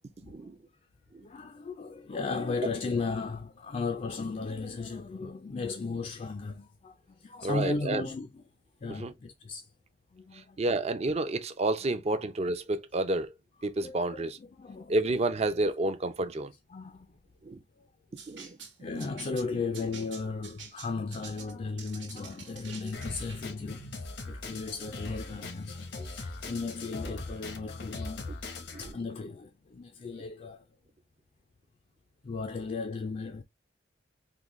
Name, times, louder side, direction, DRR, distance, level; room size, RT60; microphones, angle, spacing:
voice 1, 0.2-0.6 1.1-1.2 7.4-8.1 9.0-9.1 10.6-13.3 13.6-14.4 14.9-16.5 17.4-17.6 18.3-18.6 28.7-28.9, right 2 dB, 35° right, 0.5 m, -30 dB
voice 2, 1.2-8.4 8.8-9.7 10.1-10.6 12.1-12.2 13.8-14.9 16.7-17.1 18.8-28.2 28.8-30.6 32.2-33.4, left 4 dB, 35° left, 0.4 m, -36 dB
sound 1, 18.2-23.5, right 5 dB, 90° right, 1.2 m, -47 dB
Drum kit, 22.9-28.9, left 3 dB, 85° left, 0.9 m, -40 dB
3.7 x 2.2 x 3.0 m
head